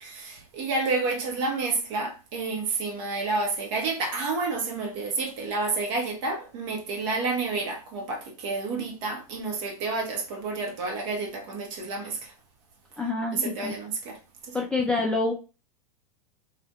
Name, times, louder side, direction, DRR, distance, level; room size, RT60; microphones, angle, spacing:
voice 1, 0.0-12.3 13.3-14.6, right 3 dB, 50° right, 1.0 m, -30 dB
voice 2, 13.0-13.7 14.5-15.3, left 3 dB, 5° left, 0.3 m, -27 dB
2.6 x 2.4 x 2.3 m
hypercardioid pair, 105°, 20 cm